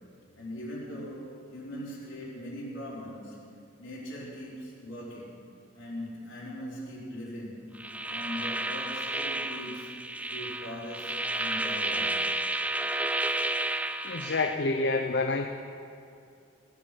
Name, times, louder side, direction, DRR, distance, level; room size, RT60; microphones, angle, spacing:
voice 1, 0.4-3.4 3.8-5.4 5.7-7.7 8.1-9.9 10.2-12.2, equal, 75° left, -5 dB, 4.4 m, -40 dB
sound 1, 7.8-14.5, right 2 dB, 5° right, 0.4 m, -31 dB
voice 2, 14.0-15.5, left 3 dB, 60° left, 5 dB, 0.7 m, -28 dB
17.0 x 9.8 x 7.5 m, 2.5 s
head